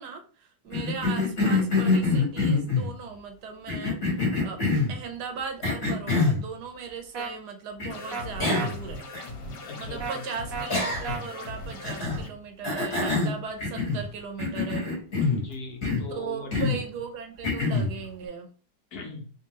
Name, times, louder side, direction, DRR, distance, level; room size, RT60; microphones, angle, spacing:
voice 1, 0.0-9.1 9.8-14.9 16.1-18.5, right 6 dB, 75° right, 5 dB, 1.2 m, -38 dB
Cough, 0.7-2.9 3.7-4.9 5.6-6.4 7.8-7.9 8.4-8.8 9.1-9.2 10.7-11.3 11.8-12.2 12.6-14.1 14.4-15.4 15.8-16.1 16.5-16.8 17.4-17.9, left 3 dB, 40° left, 1.5 m, -25 dB
sound 1, 7.1-7.3 8.1-8.2 8.5-8.7 10.0-10.2 10.5-10.7 11.0-11.2, right 5 dB, 60° right, 0.6 m, -33 dB
sound 2, 7.9-12.3, left 2 dB, 85° left, 1.5 m, -39 dB
voice 2, 9.6-10.2 15.2-16.7 18.9-19.3, left 3 dB, 65° left, 2 dB, 1.3 m, -40 dB
3.6 x 2.6 x 2.9 m, 0.37 s
omnidirectional pair, 1.8 m